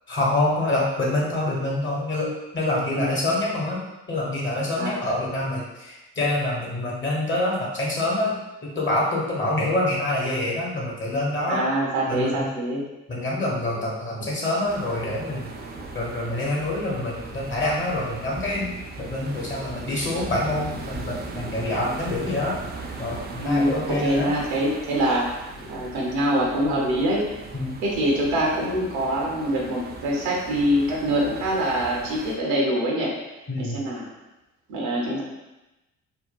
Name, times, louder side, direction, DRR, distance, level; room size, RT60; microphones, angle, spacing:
voice 1, 0.1-3.8 4.1-11.6 12.1-12.5 13.1-15.5 15.9-18.7 19.0-22.6 23.0-24.3 27.5-27.8 33.5-33.8, left 1 dB, 25° left, -4 dB, 1.1 m, -26 dB
voice 2, 2.9-3.2 4.8-5.1 11.5-12.8 23.4-25.3 25.7-27.3 27.8-33.1 33.6-34.1 34.7-35.2, equal, 65° right, -2 dB, 0.8 m, -24 dB
sound 1, 14.7-32.4, right 3 dB, 25° right, 0.4 m, -38 dB
3.7 x 2.2 x 2.3 m, 0.99 s
figure-of-eight pair, 45°, 43 cm